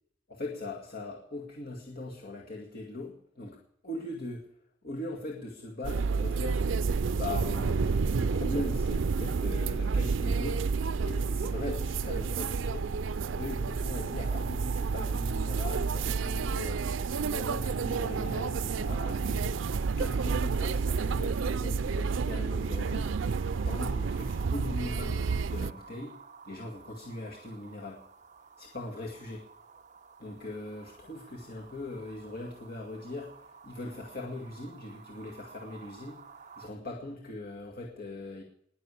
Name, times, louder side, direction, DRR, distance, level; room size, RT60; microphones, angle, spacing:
voice 1, 0.3-3.6 3.8-4.5 4.8-6.6 7.1-10.6 11.0-12.9 13.3-23.1 23.6-26.1 26.4-28.0 28.6-29.4 30.2-36.2 36.6-38.4, left 2 dB, 55° left, -1 dB, 2.1 m, -40 dB
sound 1, 5.8-25.7, right 5 dB, 90° right, 0.5 m, -30 dB
sound 2, 22.4-36.7, right 5 dB, 40° right, 1.0 m, -52 dB
20.0 x 7.0 x 8.4 m, 0.70 s
head